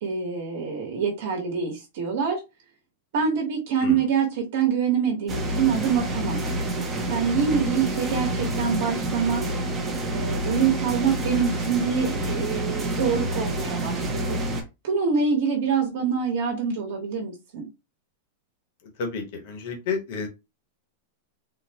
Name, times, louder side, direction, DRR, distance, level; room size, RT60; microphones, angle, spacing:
voice 1, 0.0-2.4 3.1-6.5 7.1-9.4 10.1-14.4 14.8-17.6, right 6 dB, 55° right, 0 dB, 1.1 m, -25 dB
sound 1, 5.3-14.6, right 1 dB, 15° right, 0.6 m, -28 dB
voice 2, 19.0-20.3, left 4 dB, 45° left, 3 dB, 1.0 m, -30 dB
3.8 x 2.1 x 2.8 m, 0.25 s
supercardioid pair, 180°, 0 cm